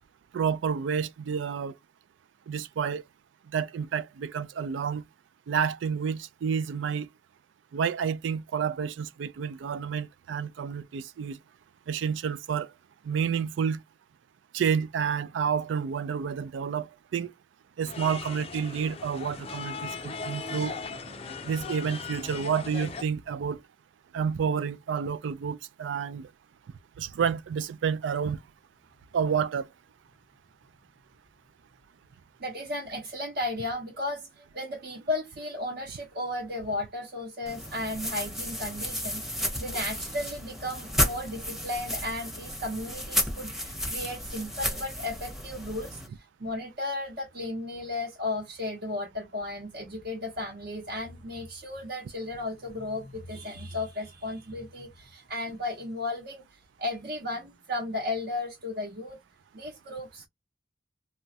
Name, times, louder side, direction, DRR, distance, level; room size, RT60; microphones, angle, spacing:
voice 1, 0.3-1.7 2.5-3.0 3.5-5.0 5.5-7.1 7.7-11.4 11.9-12.7 13.0-13.8 14.5-17.3 17.8-20.7 21.5-23.6 24.1-26.3 27.0-28.4 29.1-29.7, right 7 dB, 75° right, 0.3 m, -29 dB
sound 1, 17.9-23.0, left 4 dB, 30° left, 0.4 m, -38 dB
voice 2, 32.4-59.2 59.5-60.3, left 2 dB, 55° right, 0.9 m, -35 dB
sound 2, 37.5-46.1, equal, ahead, 0.7 m, -33 dB
3.0 x 2.3 x 2.7 m
head